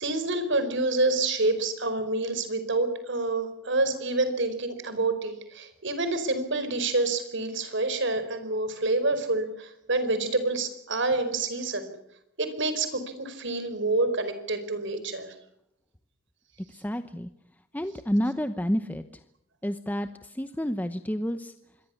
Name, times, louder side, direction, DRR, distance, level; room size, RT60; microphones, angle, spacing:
voice 1, 0.0-11.9 12.4-15.3, right 2 dB, 60° right, 11 dB, 4.9 m, -27 dB
voice 2, 16.7-17.3 17.7-19.0 19.6-21.5, equal, 10° left, 9 dB, 0.9 m, -29 dB
26.5 x 22.5 x 7.2 m, 0.79 s
head